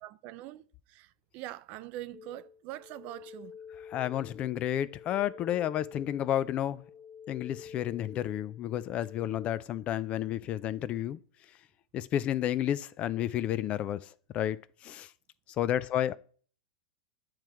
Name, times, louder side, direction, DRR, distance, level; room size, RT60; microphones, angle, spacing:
voice 1, 0.0-3.5, right 15 dB, 45° right, 0.4 m, -43 dB
sound 1, 2.1-9.5, left 7 dB, 50° left, 1.1 m, -49 dB
voice 2, 3.9-6.8 7.3-11.2 11.9-14.6 14.8-15.1 15.6-16.1, left 11 dB, 35° left, 0.4 m, -31 dB
8.9 x 3.1 x 4.6 m
hypercardioid pair, 120°, 4 cm